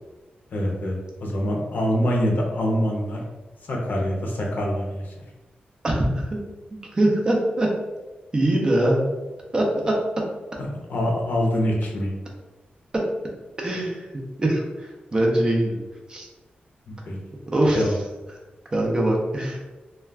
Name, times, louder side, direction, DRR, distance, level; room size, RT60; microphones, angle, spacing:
voice 1, 0.5-3.2 3.7-5.1 10.9-12.2 16.9-17.2 17.7-18.0, equal, 60° left, -1 dB, 0.6 m, -25 dB
voice 2, 5.8-6.4 6.9-7.7 8.3-9.1 9.5-9.9 13.6-14.1 14.4-15.8 16.1-16.3 17.5-17.9 18.7-19.6, right 1 dB, 25° right, -1 dB, 0.5 m, -22 dB
2.3 x 2.2 x 3.3 m, 1.1 s
wide cardioid pair, 165°, 3 cm